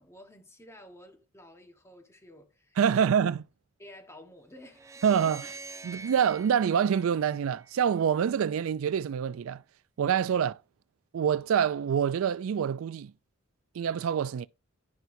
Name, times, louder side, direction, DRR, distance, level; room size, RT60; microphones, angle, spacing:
voice 1, 0.0-3.1 3.8-5.0, left 1 dB, 15° left, 1.4 m, -52 dB
voice 2, 2.8-3.4 5.0-5.5 5.8-9.6 10.0-10.6 11.1-13.1 13.7-14.5, right 8 dB, 90° right, 0.3 m, -26 dB
sound 1, 4.7-8.0, right 3 dB, 15° right, 0.3 m, -46 dB
10.5 x 5.6 x 2.7 m
head